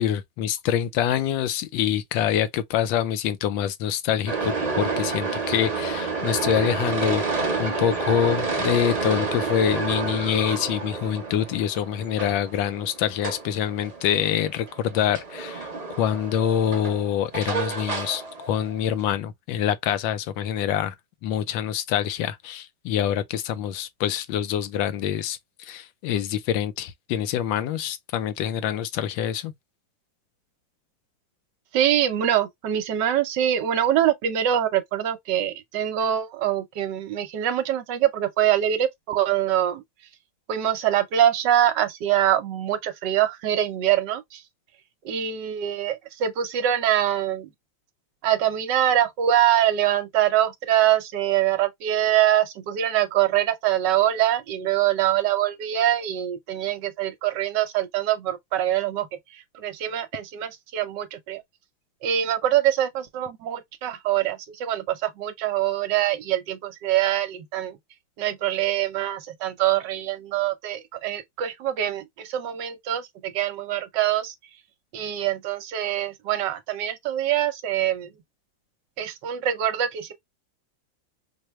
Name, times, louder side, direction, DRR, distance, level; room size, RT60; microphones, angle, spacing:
voice 1, 0.0-15.7 16.0-20.9 21.2-29.5, left 10 dB, 80° left, 1.3 m, -25 dB
sound 1, 4.3-19.0, right 4 dB, 25° right, 0.9 m, -29 dB
voice 2, 31.7-39.8 40.5-44.4 45.0-47.5 48.2-59.1 59.3-61.4 62.0-67.8 68.2-74.3 74.9-78.1 79.0-80.1, right 11 dB, 70° right, 1.2 m, -24 dB
4.5 x 2.2 x 3.0 m
omnidirectional pair, 2.1 m